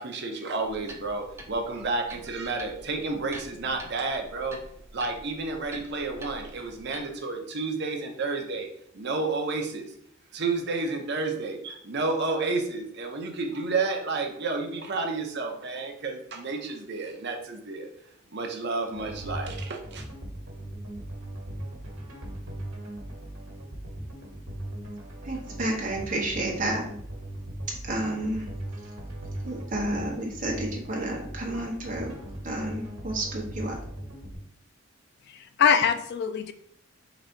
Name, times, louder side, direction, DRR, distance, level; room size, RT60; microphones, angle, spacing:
voice 1, 0.0-4.6 4.9-8.7 8.9-9.9 10.3-17.9 18.3-20.0, right 3 dB, 55° right, 3 dB, 0.7 m, -31 dB
sound 1, 0.6-7.0, right 1 dB, 10° right, 0.5 m, -46 dB
sound 2, 18.9-34.4, right 1 dB, 75° right, 1.3 m, -39 dB
voice 2, 25.2-26.8 27.8-28.5 29.4-32.1 32.4-33.8, right 1 dB, 40° right, -1 dB, 1.0 m, -30 dB
voice 3, 35.3-36.5, left 7 dB, 50° left, 9 dB, 0.3 m, -23 dB
3.9 x 2.7 x 4.4 m, 0.67 s
head